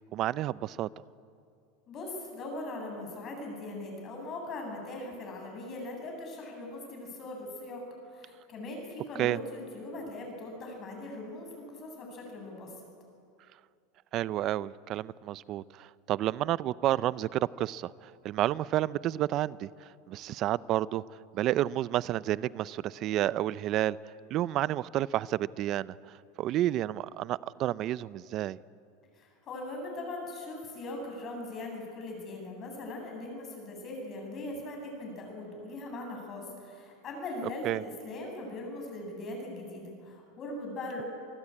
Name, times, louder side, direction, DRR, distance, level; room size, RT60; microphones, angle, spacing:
voice 1, 0.1-0.9 9.2-9.4 14.1-21.0 21.3-24.0 24.3-26.0 26.4-28.6 37.6-37.8, right 13 dB, 40° right, 19 dB, 0.5 m, -30 dB
voice 2, 1.9-7.8 8.1-12.7 29.1-41.0, left 2 dB, 35° left, 1 dB, 8.0 m, -40 dB
27.0 x 19.0 x 8.7 m, 2.5 s
supercardioid pair, 135°, 0 cm